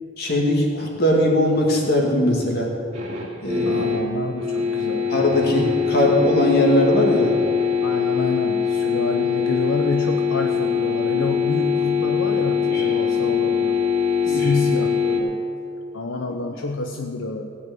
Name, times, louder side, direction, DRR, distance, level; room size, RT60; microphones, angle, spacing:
voice 1, 0.2-2.7 3.4-3.9 5.1-7.4 12.7-12.9 14.3-14.5, left 1 dB, 50° left, -1 dB, 2.4 m, -20 dB
sound 1, 2.9-15.2, left 6 dB, 35° right, 2.2 m, -22 dB
voice 2, 3.7-5.1 7.8-13.8 14.2-15.4 15.9-17.5, left 3 dB, 80° left, 3 dB, 0.7 m, -28 dB
16.5 x 5.7 x 9.1 m, 2.5 s
head